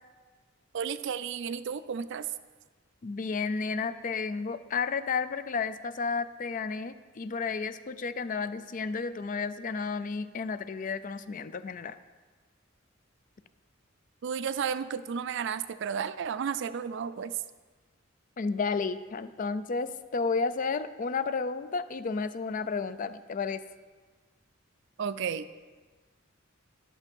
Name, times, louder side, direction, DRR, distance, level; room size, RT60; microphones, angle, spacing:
voice 1, 0.7-2.3 14.2-17.3 25.0-25.5, right 7 dB, 60° right, 14 dB, 0.4 m, -33 dB
voice 2, 3.0-12.0 18.4-23.6, left 4 dB, 40° left, 13 dB, 0.4 m, -32 dB
11.0 x 6.1 x 5.3 m, 1.4 s
head